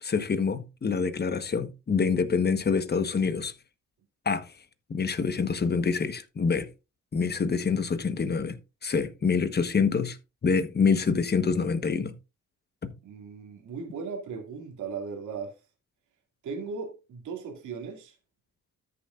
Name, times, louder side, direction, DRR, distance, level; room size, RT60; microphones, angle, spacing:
voice 1, 0.0-3.5 4.2-4.5 4.9-6.7 7.1-8.6 8.8-10.2 10.4-12.1 12.8-12.9, left 5 dB, 35° left, 1.2 m, -26 dB
voice 2, 13.0-15.6 16.4-18.1, right 5 dB, 75° right, 2.4 m, -37 dB
13.5 x 6.8 x 2.5 m
cardioid pair, 90°, 30 cm